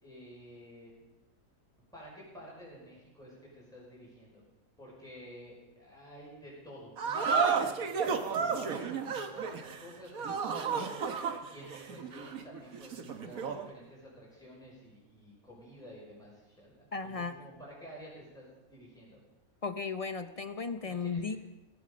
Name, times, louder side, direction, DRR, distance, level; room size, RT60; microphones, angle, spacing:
voice 1, 0.0-0.9 1.9-4.4 4.8-11.0 11.4-19.2 20.8-21.4, equal, ahead, -5 dB, 5.4 m, -51 dB
sound 1, 7.0-13.7, right 5 dB, 70° right, 1.6 m, -32 dB
voice 2, 16.9-17.4 19.6-21.4, left 4 dB, 45° left, 10 dB, 0.4 m, -35 dB
17.5 x 15.0 x 5.2 m, 1.0 s
omnidirectional pair, 1.6 m